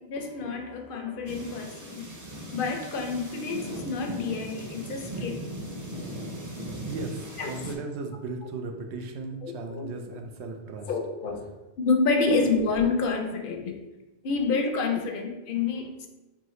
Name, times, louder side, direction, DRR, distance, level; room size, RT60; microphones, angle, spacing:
voice 1, 0.0-2.1 2.5-5.4 7.4-7.5 9.4-9.9 10.9-11.5 11.8-13.8 14.2-16.1, left 4 dB, 60° left, 4 dB, 0.7 m, -28 dB
sound 1, 1.3-7.8, right 1 dB, 25° right, 0.4 m, -38 dB
voice 2, 6.8-10.9 12.3-12.4, right 3 dB, 85° right, 4 dB, 0.9 m, -36 dB
4.6 x 2.9 x 3.1 m, 1.1 s
omnidirectional pair, 1.1 m